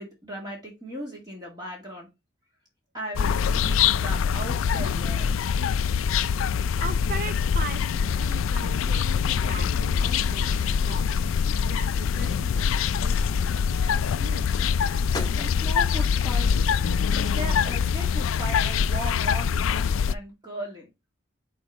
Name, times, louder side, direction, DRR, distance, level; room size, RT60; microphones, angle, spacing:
voice 1, 0.0-2.1 2.9-5.4 15.3-16.6 17.1-20.9, right 1 dB, 20° right, 2.2 m, -37 dB
sound 1, 3.2-20.1, left 7 dB, 80° left, 0.4 m, -24 dB
voice 2, 6.8-14.6, right 3 dB, 45° right, 0.6 m, -40 dB
Crumpling crinkling, 9.9-16.0, left 2 dB, 20° left, 1.0 m, -42 dB
6.1 x 4.0 x 4.7 m
head